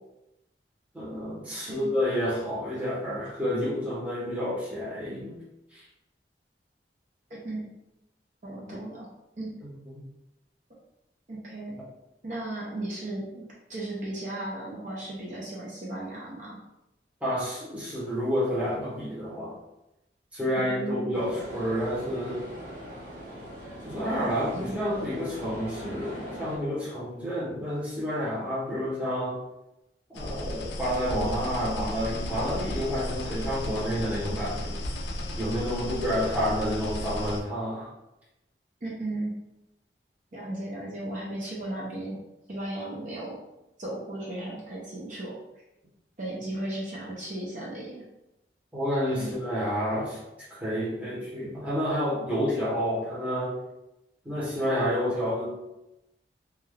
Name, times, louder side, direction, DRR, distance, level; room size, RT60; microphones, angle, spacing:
voice 1, 0.9-5.4 5.7-5.8 17.2-19.6 20.3-22.4 23.8-29.4 30.1-34.8 35.4-37.9 48.7-50.2 50.5-53.6 54.2-55.5, equal, 10° right, -8 dB, 0.7 m, -29 dB
voice 2, 7.3-7.7 8.4-9.1 9.4-9.5 11.3-11.8 12.2-13.4 13.7-16.6 20.5-21.2 24.5-24.8 38.8-39.3 40.3-42.2 42.5-43.4 43.8-45.4 46.2-48.0 49.2-49.3, right 1 dB, 45° right, -5 dB, 0.5 m, -35 dB
sound 1, 21.1-26.6, equal, 90° right, 1.2 m, -41 dB
sound 2, 30.1-37.4, left 1 dB, 75° left, 0.4 m, -34 dB
2.3 x 2.2 x 3.2 m, 0.91 s
head